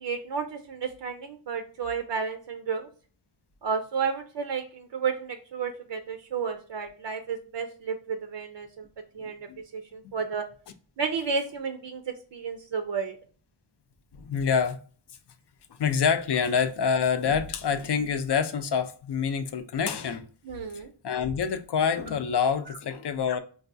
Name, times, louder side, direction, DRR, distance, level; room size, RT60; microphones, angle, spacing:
voice 1, 0.0-2.9 3.6-8.9 9.2-9.5 9.7-10.5 11.0-12.0 12.3-13.2 20.5-20.9, right 5 dB, 75° right, 0.5 m, -32 dB
voice 2, 9.2-9.6 14.2-14.8 15.8-20.3 21.0-23.4, left 6 dB, 65° left, 0.5 m, -26 dB
4.7 x 2.3 x 2.5 m
wide cardioid pair, 70°, 44 cm